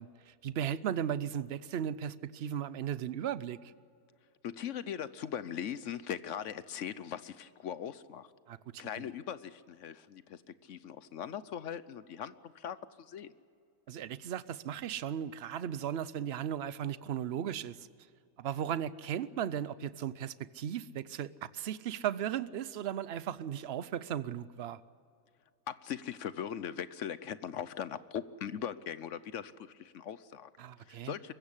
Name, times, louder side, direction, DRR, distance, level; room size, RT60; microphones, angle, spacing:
voice 1, 0.0-3.6 8.5-8.6 9.0-9.1 13.9-17.9 18.4-24.8 30.6-31.1, right 9 dB, 55° right, 0.8 m, -36 dB
voice 2, 4.4-8.3 8.8-13.3 25.7-30.5 30.9-31.3, left 9 dB, 65° left, 1.0 m, -40 dB
23.5 x 15.0 x 9.9 m
omnidirectional pair, 1.5 m